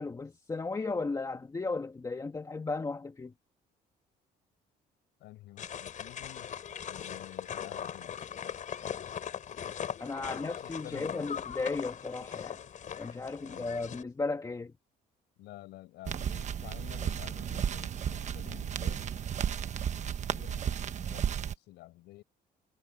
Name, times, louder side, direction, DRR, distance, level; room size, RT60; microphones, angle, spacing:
voice 1, 0.0-3.3 10.0-12.6 13.0-14.7, left 3 dB, 20° left, 2.0 m, -35 dB
voice 2, 5.2-6.6 6.9-8.2 10.2-11.4 13.4-13.9 15.4-22.2, left 17 dB, 85° left, 7.2 m, -51 dB
sound 1, 5.6-14.0, left 8 dB, 50° left, 4.2 m, -40 dB
sound 2, 16.1-21.6, right 8 dB, 45° right, 1.1 m, -34 dB
cardioid pair, 110°, 17 cm